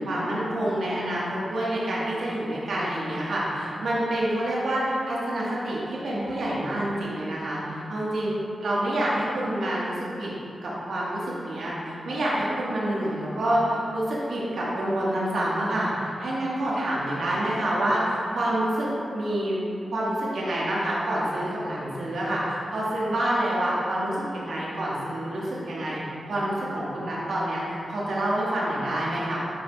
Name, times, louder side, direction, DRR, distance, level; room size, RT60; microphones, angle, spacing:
voice 1, 0.0-8.3 8.6-10.3 10.6-19.6 19.9-26.0 26.3-29.4, right 1 dB, 75° right, -7 dB, 1.4 m, -27 dB
9.0 x 4.7 x 2.3 m, 2.7 s
cardioid pair, 65°, 0 cm